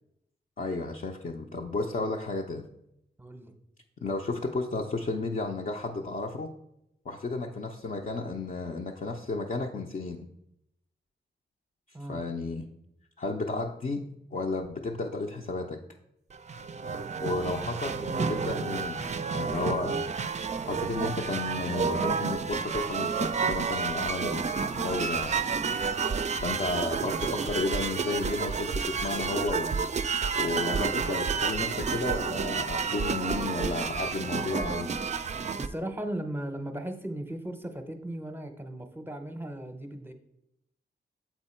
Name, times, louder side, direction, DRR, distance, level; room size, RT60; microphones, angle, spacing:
voice 1, 0.6-2.6 4.0-6.5 7.1-10.2 12.1-12.7 13.2-14.0 14.3-15.8 17.2-20.0 20.7-25.3 26.3-29.7 30.3-34.9, left 3 dB, 45° left, 0 dB, 0.6 m, -33 dB
voice 2, 3.2-3.5 11.9-12.2 35.6-40.1, right 1 dB, 10° right, 7 dB, 0.8 m, -37 dB
sound 1, 16.3-35.7, right 5 dB, 40° right, 0.4 m, -30 dB
7.2 x 4.5 x 4.3 m, 0.79 s
wide cardioid pair, 95°, 19 cm